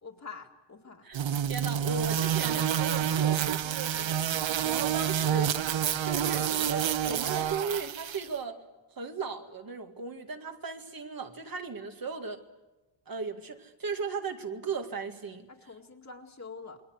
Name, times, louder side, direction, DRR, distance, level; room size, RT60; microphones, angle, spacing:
voice 1, 0.0-1.1 4.4-4.7 15.5-16.8, left 4 dB, 35° left, 1 dB, 2.1 m, -46 dB
voice 2, 1.0-4.2 4.6-5.5 6.0-8.6 9.0-12.4 13.1-15.5, right 5 dB, 45° right, 5 dB, 2.1 m, -36 dB
sound 1, 1.1-8.3, right 9 dB, 70° right, 0.8 m, -28 dB
28.5 x 22.5 x 8.1 m, 1.1 s
wide cardioid pair, 175°, 47 cm